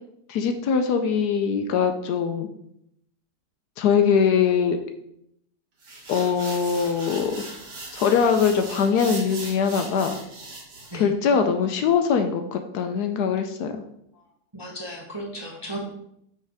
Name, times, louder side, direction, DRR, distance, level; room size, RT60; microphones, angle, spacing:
voice 1, 0.3-2.5 3.8-4.8 6.1-7.3 7.9-10.1 10.9-13.7, left 6 dB, 70° left, 6 dB, 1.1 m, -22 dB
sound 1, 5.8-11.0, right 2 dB, 70° right, 2.1 m, -39 dB
voice 2, 14.5-15.8, right 1 dB, 20° right, -2 dB, 0.7 m, -35 dB
5.8 x 4.4 x 4.8 m, 0.75 s
omnidirectional pair, 1.9 m